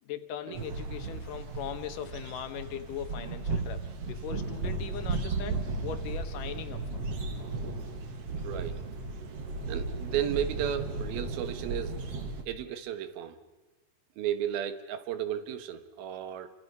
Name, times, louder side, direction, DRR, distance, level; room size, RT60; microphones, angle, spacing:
voice 1, 0.0-7.0 7.7-7.8, left 9 dB, 70° left, 9 dB, 2.8 m, -40 dB
sound 1, 0.5-12.4, right 3 dB, 50° right, 2.6 m, -35 dB
voice 2, 8.4-8.8 9.7-12.0 12.5-13.4 14.2-16.5, right 10 dB, 85° right, 10 dB, 3.3 m, -34 dB
29.5 x 25.5 x 5.5 m, 1.1 s
omnidirectional pair, 4.2 m